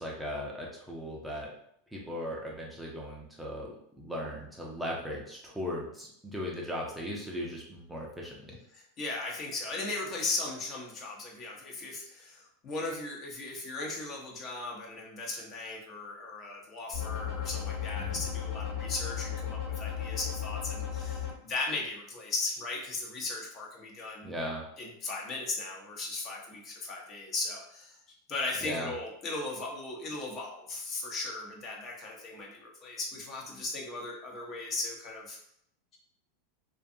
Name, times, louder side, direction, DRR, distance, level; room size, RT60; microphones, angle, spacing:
voice 1, 0.0-1.5 1.9-8.6 18.0-18.3 24.2-24.7 28.6-28.9, equal, 5° right, -3 dB, 0.5 m, -38 dB
voice 2, 8.7-24.3 24.8-28.0 28.3-35.4, left 3 dB, 40° left, -1 dB, 0.8 m, -37 dB
sound 1, 16.9-21.3, left 9 dB, 55° left, 1.1 m, -35 dB
2.4 x 2.3 x 2.6 m, 0.70 s
hypercardioid pair, 100°, 0 cm